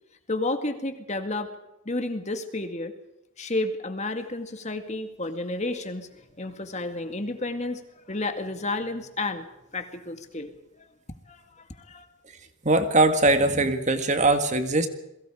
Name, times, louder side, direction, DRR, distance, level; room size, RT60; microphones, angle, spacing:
voice 1, 0.3-1.5 1.9-2.9 3.4-9.5 9.7-10.9 11.3-12.1, left 2 dB, 35° left, 7 dB, 2.2 m, -31 dB
voice 2, 12.6-14.9, right 2 dB, 35° right, 8 dB, 1.9 m, -21 dB
29.0 x 22.5 x 5.0 m, 0.92 s
head